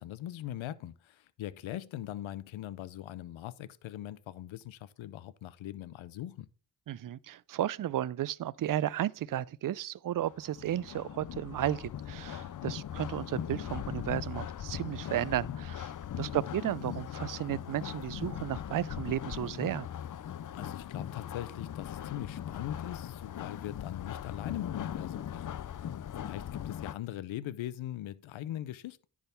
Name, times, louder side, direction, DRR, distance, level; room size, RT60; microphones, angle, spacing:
voice 1, 0.0-6.5 12.4-12.7 16.1-16.4 20.5-29.1, left 12 dB, 85° left, 0.6 m, -41 dB
voice 2, 6.9-15.9 16.2-19.9, right 12 dB, 45° right, 0.5 m, -33 dB
sound 1, 10.2-26.9, left 10 dB, 45° left, 0.5 m, -39 dB
10.5 x 3.6 x 6.8 m
supercardioid pair, 40°, 46 cm